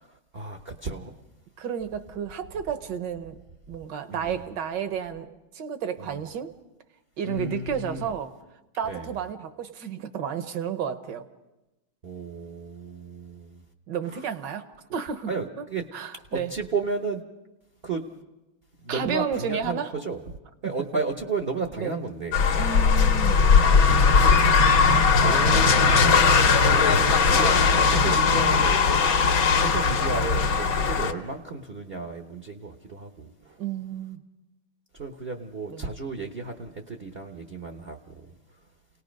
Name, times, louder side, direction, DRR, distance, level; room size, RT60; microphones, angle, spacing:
voice 1, 0.1-1.1 4.1-4.4 6.0-6.2 7.2-8.1 8.8-9.1 12.0-13.6 14.0-14.3 15.3-15.8 16.1-17.2 17.8-18.0 18.8-20.2 20.6-22.5 24.2-24.3 25.2-28.9 29.5-33.6 34.9-38.4, right 4 dB, 40° right, 5 dB, 0.8 m, -33 dB
voice 2, 1.6-3.4 3.7-6.5 7.2-8.3 8.8-11.2 13.9-14.7 14.9-15.3 15.6-15.7 15.9-16.5 18.9-19.9 21.8-21.9 22.6-23.5 25.7-25.8 33.6-34.2 35.7-35.8, right 7 dB, 65° right, 10 dB, 1.6 m, -32 dB
sound 1, 22.3-31.1, left 5 dB, 75° left, 2.1 m, -19 dB
29.0 x 18.5 x 5.2 m, 1.0 s
omnidirectional pair, 2.2 m